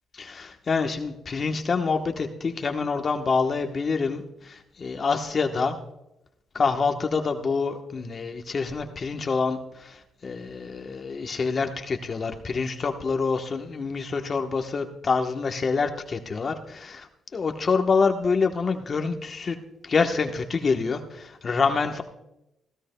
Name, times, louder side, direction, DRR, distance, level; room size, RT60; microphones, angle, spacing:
voice 1, 0.1-5.8 6.5-19.6 19.8-22.0, left 4 dB, 40° left, 5 dB, 1.1 m, -26 dB
18.5 x 16.0 x 2.2 m, 0.87 s
cardioid pair, 90°, 0 cm